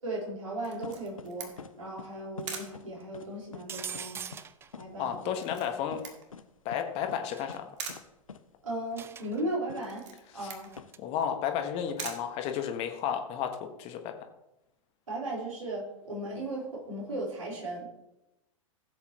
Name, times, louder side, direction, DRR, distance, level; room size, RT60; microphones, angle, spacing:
voice 1, 0.0-4.2 4.8-5.6 8.6-10.0 10.3-10.7 15.1-17.9, right 1 dB, 75° right, -4 dB, 4.4 m, -36 dB
Camera, 0.6-13.1, right 5 dB, 60° right, 2.0 m, -46 dB
sound 1, 0.8-1.3 1.6-1.7 2.0-2.1 2.4-2.9 3.1-3.3 3.5-3.6 3.9-4.1 4.3-4.4 4.7-4.9 5.1-5.3 5.5-5.6 5.9-6.0 6.3-6.4 6.7-6.8 7.1-7.2 7.5-7.6 7.9-8.0 8.3-8.4 9.7-9.8 10.8-10.9 11.9-12.0, left 6 dB, 75° left, 0.8 m, -44 dB
sound 2, 3.7-4.7 7.3-7.6 9.0-9.4 10.6-11.0, right 7 dB, 15° right, 0.4 m, -41 dB
voice 2, 5.0-6.0 6.6-7.7 10.4-10.5 11.0-14.1, left 8 dB, 35° left, 5 dB, 1.3 m, -32 dB
16.0 x 7.9 x 3.0 m, 0.91 s
figure-of-eight pair, 95°, 18 cm